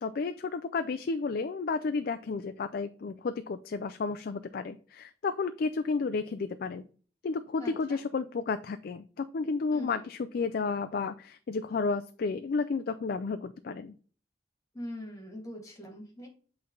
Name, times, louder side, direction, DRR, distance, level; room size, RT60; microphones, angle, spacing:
voice 1, 0.0-6.8 7.2-13.9, left 4 dB, 55° left, 10 dB, 0.4 m, -32 dB
voice 2, 7.6-8.0 9.7-10.0 14.7-16.3, left 1 dB, 20° left, 1 dB, 2.1 m, -42 dB
8.0 x 3.3 x 3.8 m, 0.41 s
head